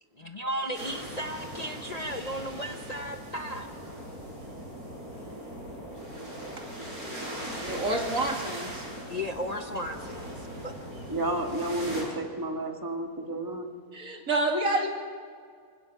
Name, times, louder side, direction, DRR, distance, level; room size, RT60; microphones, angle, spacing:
voice 1, 0.2-3.7 9.1-10.3 10.6-10.7, equal, 35° left, 4 dB, 0.9 m, -35 dB
sound 1, 0.7-12.0, equal, 85° right, 7.6 m, -40 dB
voice 2, 7.6-8.9 13.9-14.9, right 2 dB, 70° right, 2 dB, 2.7 m, -28 dB
voice 3, 11.1-13.7, right 1 dB, 15° right, 4 dB, 1.6 m, -31 dB
25.0 x 17.0 x 6.9 m, 2.1 s
omnidirectional pair, 1.5 m